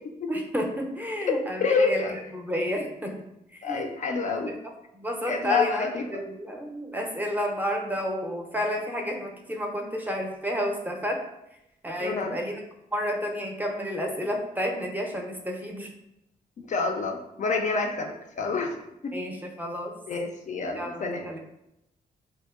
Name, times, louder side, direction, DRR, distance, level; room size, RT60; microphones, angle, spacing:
voice 1, 0.3-2.0 2.3-3.1 3.5-3.9 4.2-4.6 4.9-11.2 11.8-12.6 12.9-15.9 19.1-19.9 20.8-21.4, equal, 10° right, 1 dB, 0.5 m, -31 dB
voice 2, 1.3-2.1 3.6-4.5 5.3-6.2 12.0-12.4 16.6-19.2 20.1-21.2, left 4 dB, 50° left, 3 dB, 0.4 m, -28 dB
2.7 x 2.1 x 2.3 m, 0.83 s
supercardioid pair, 55°, 17 cm